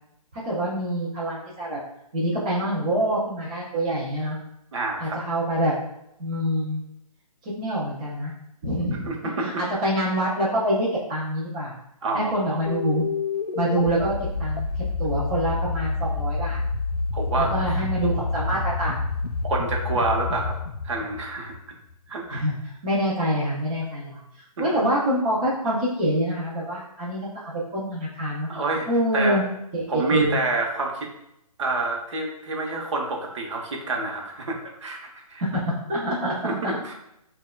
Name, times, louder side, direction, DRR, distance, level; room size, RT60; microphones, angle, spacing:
voice 1, 0.3-1.8 2.1-4.4 5.0-5.7 6.2-6.8 7.4-8.3 8.6-9.1 9.4-11.7 12.1-13.0 13.5-14.1 14.4-14.7 15.0-16.6 17.4-19.0 22.3-22.5 22.8-24.2 24.6-28.5 28.9-29.4 29.7-30.4 35.4-36.8, equal, 15° right, -8 dB, 0.4 m, -26 dB
voice 2, 4.7-5.2 9.1-9.6 12.0-12.6 17.1-17.8 19.4-20.5 20.8-21.5 22.1-22.4 24.7-24.8 28.5-28.9 29.1-29.4 29.9-31.1 31.6-35.0 35.3-35.4 36.4-36.9, right 3 dB, 50° right, 1 dB, 0.8 m, -27 dB
sound 1, 12.7-22.0, left 3 dB, 85° left, 0.4 m, -28 dB
6.0 x 2.2 x 2.2 m, 0.81 s
hypercardioid pair, 160°, 20 cm